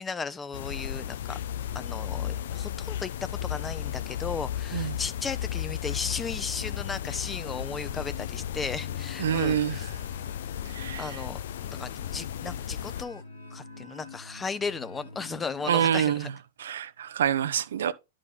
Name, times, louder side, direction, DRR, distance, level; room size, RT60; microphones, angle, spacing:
voice 1, 0.0-1.4 1.7-9.9 11.0-13.2 13.5-16.3, left 5 dB, 15° left, 0.7 m, -35 dB
sound 1, 0.5-13.0, left 10 dB, 65° left, 0.5 m, -34 dB
sound 2, 6.6-16.3, left 3 dB, 90° left, 1.8 m, -47 dB
voice 2, 9.2-9.8 10.7-11.1 15.7-16.3 16.6-17.9, right 9 dB, 70° right, 0.7 m, -26 dB
11.0 x 4.9 x 3.9 m
hypercardioid pair, 105°, 0 cm